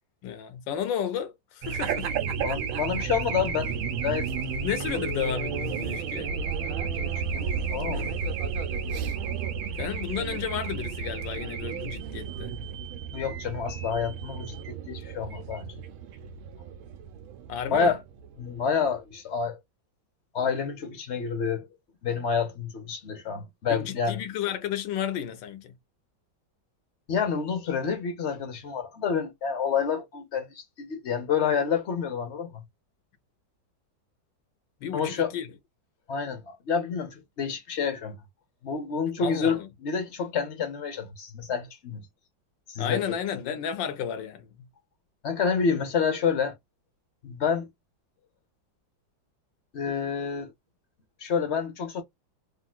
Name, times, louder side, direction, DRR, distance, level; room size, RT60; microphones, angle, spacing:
voice 1, 0.2-2.1 4.6-6.3 9.8-12.6 17.5-18.0 23.7-25.8 34.8-35.5 39.2-39.7 42.8-44.7, left 9 dB, 80° left, 1.3 m, -32 dB
Race car auto racing / Alarm, 1.6-18.6, right 6 dB, 85° right, 1.5 m, -32 dB
voice 2, 2.4-4.3 6.8-8.1 13.1-15.7 17.7-18.0 18.4-19.6 20.3-21.7 22.0-24.2 27.1-32.6 34.9-35.3 36.1-38.2 38.6-42.1 42.7-43.2 45.2-46.5 47.2-47.7 49.7-50.5 51.2-52.0, left 6 dB, 50° left, 0.9 m, -28 dB
3.7 x 2.5 x 2.2 m
omnidirectional pair, 2.1 m